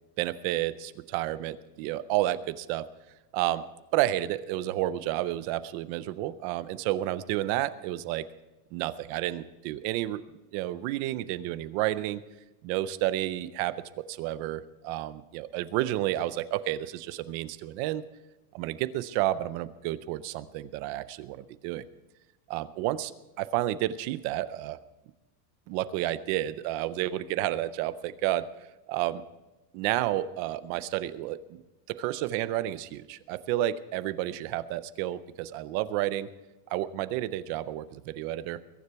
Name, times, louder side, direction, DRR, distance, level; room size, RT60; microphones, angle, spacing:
voice 1, 0.2-2.9 3.3-3.6 3.9-8.2 8.7-10.2 10.5-12.2 12.6-18.0 18.5-21.8 22.5-24.8 25.7-28.5 28.9-29.2 29.7-31.6 31.9-36.3 36.7-38.6, right 14 dB, 35° right, 15 dB, 0.4 m, -31 dB
21.5 x 9.8 x 4.6 m, 1.0 s
supercardioid pair, 170°, 46 cm